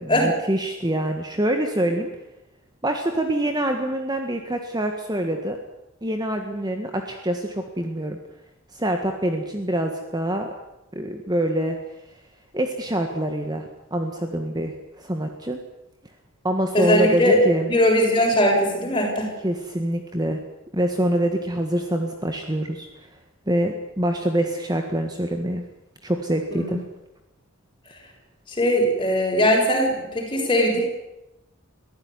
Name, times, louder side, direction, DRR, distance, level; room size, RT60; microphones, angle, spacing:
voice 1, 0.0-2.1 2.8-5.6 6.0-8.2 8.7-10.5 10.9-11.8 12.5-15.6 16.4-17.7 19.4-20.4 20.7-22.9 23.5-25.6 26.0-26.8, right 1 dB, 20° right, 4 dB, 1.6 m, -25 dB
voice 2, 16.7-17.4 17.7-19.3 26.5-26.7 28.5-30.8, equal, 20° left, 0 dB, 6.8 m, -20 dB
23.0 x 15.5 x 9.7 m, 0.92 s
head